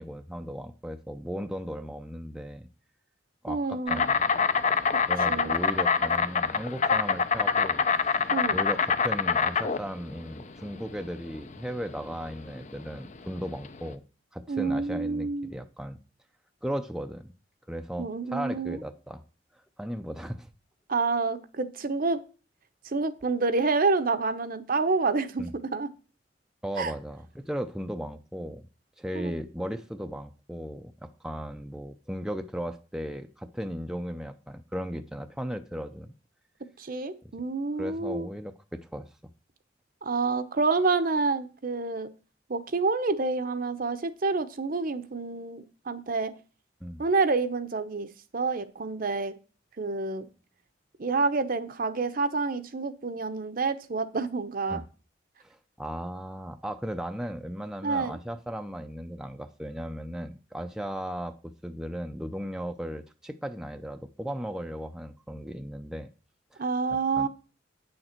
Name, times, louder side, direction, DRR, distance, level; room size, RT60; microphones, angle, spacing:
voice 1, 0.0-2.7 3.4-4.2 5.1-14.0 14.3-16.0 16.6-17.3 17.7-19.2 19.5-20.5 25.4-25.5 26.6-28.7 29.0-36.1 37.8-39.1 46.8-47.0 54.7-54.8 55.4-66.1 66.5-66.6 67.1-67.3, equal, 5° right, 6 dB, 0.5 m, -36 dB
voice 2, 3.5-4.1 5.3-5.6 8.3-8.6 14.5-15.5 18.0-18.8 20.9-22.2 22.8-25.5 25.7-25.9 26.8-26.9 29.2-29.3 36.8-38.3 40.0-42.1 42.5-46.3 47.0-48.1 48.3-49.3 49.8-50.3 51.0-54.8 57.8-58.2 66.6-67.3, right 4 dB, 50° right, 11 dB, 0.7 m, -28 dB
Insect, 3.9-13.9, left 5 dB, 40° left, 0.6 m, -26 dB
8.8 x 6.6 x 4.4 m, 0.35 s
head